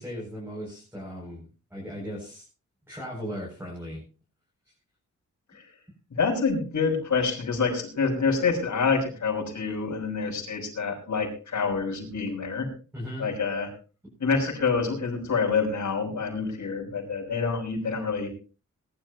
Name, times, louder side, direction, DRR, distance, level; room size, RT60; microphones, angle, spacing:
voice 1, 0.0-1.4 1.7-2.5 2.9-4.0 12.9-13.4, equal, 5° right, -4 dB, 7.8 m, -37 dB
voice 2, 6.1-12.7 13.2-13.7 14.2-18.3, left 5 dB, 65° left, 0 dB, 6.2 m, -27 dB
21.5 x 12.0 x 3.1 m, 0.34 s
wide cardioid pair, 115°, 31 cm